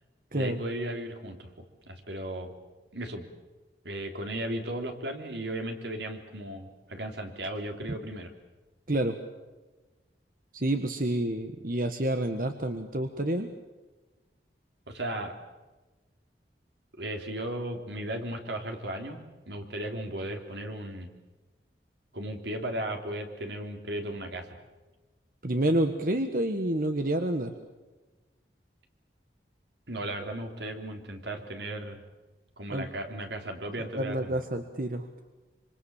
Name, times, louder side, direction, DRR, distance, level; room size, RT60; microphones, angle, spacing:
voice 1, 0.3-1.5 1.9-2.5 2.9-3.3 3.8-8.3 14.9-15.3 17.0-21.1 22.1-24.6 29.9-32.0 32.6-34.4, right 1 dB, 80° right, 4 dB, 3.5 m, -36 dB
voice 2, 10.5-13.5 25.4-27.5 32.7-32.9 33.8-35.2, right 1 dB, 50° right, 6 dB, 1.4 m, -29 dB
26.5 x 25.5 x 7.2 m, 1.2 s
head